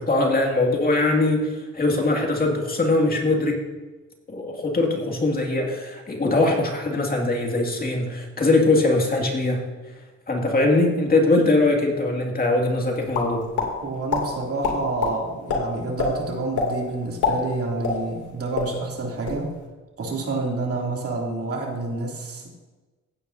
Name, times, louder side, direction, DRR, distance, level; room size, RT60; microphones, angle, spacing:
voice 1, 0.0-3.6 4.3-9.6 10.3-13.5, left 2 dB, 30° left, 0 dB, 2.2 m, -21 dB
sound 1, 13.1-13.7 14.1-14.2 14.6-15.1 15.5-15.6 16.0-16.1 16.6-16.7 17.1-18.3 18.5-18.7 19.1-19.4, left 6 dB, 80° left, 2.8 m, -24 dB
voice 2, 13.8-19.5 20.0-22.5, right 3 dB, 50° right, -1 dB, 2.8 m, -28 dB
16.0 x 9.0 x 2.7 m, 1.2 s
cardioid pair, 90°, 30 cm